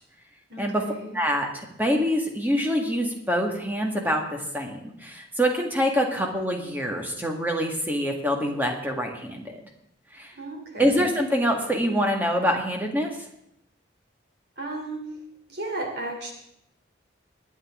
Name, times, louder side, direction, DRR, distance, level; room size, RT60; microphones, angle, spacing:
voice 1, 0.5-1.1 10.4-11.1 14.6-15.0 15.5-16.3, right 2 dB, 55° right, 1 dB, 3.3 m, -34 dB
voice 2, 1.1-9.6 10.1-10.3 10.8-13.2, equal, 10° right, 1 dB, 1.7 m, -25 dB
22.0 x 9.2 x 3.7 m, 0.77 s
head